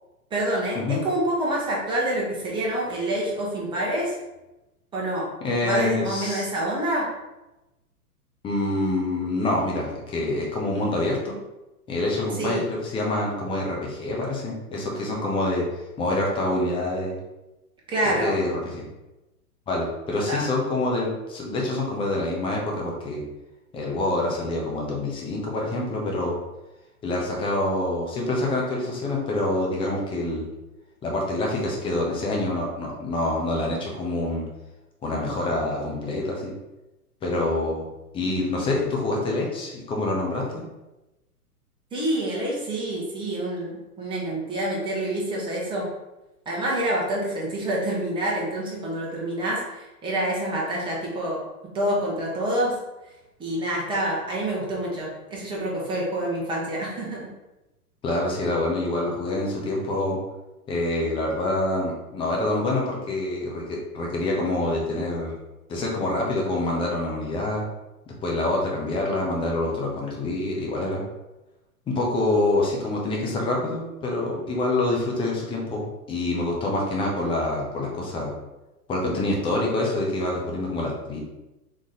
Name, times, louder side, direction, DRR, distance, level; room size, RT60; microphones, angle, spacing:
voice 1, 0.3-4.2 4.9-5.3 5.6-7.1 12.3-12.6 17.9-18.3 20.3-20.4 41.9-45.9 46.5-51.4 51.7-52.7 53.4-57.3, right 1 dB, 10° right, -4 dB, 1.1 m, -27 dB
voice 2, 5.4-6.5 8.4-11.4 11.9-15.6 16.0-17.2 18.1-18.8 19.7-23.2 23.7-26.4 27.0-30.5 31.0-34.4 35.0-36.5 37.2-37.9 38.1-40.7 58.0-60.2 60.7-65.4 65.7-67.6 68.1-71.0 71.9-78.3 78.9-81.2, left 2 dB, 10° left, -2 dB, 0.7 m, -26 dB
4.2 x 3.0 x 3.8 m, 1.0 s
hypercardioid pair, 130°, 46 cm